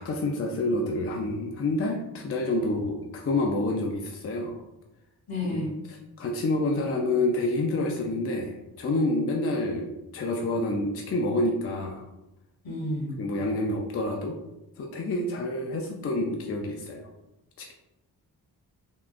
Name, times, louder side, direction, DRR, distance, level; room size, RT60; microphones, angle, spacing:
voice 1, 0.0-4.6 5.5-12.0 13.2-14.4 14.8-17.0 17.6-17.7, left 2 dB, 40° left, 1 dB, 0.4 m, -28 dB
voice 2, 5.3-5.7 12.6-13.2, left 1 dB, 70° left, -4 dB, 1.2 m, -31 dB
3.5 x 2.3 x 2.5 m, 0.95 s
cardioid pair, 85°, 38 cm